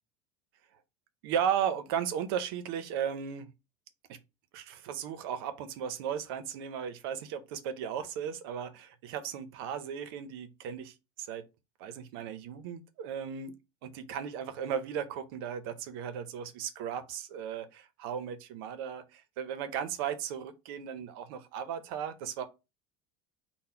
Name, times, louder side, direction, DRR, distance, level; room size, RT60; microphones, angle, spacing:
voice 1, 1.2-3.5 4.1-4.2 4.5-11.5 11.8-13.5 13.8-22.4, right 8 dB, 75° right, 0.6 m, -36 dB
3.9 x 2.1 x 4.3 m
cardioid pair, 165°, 12 cm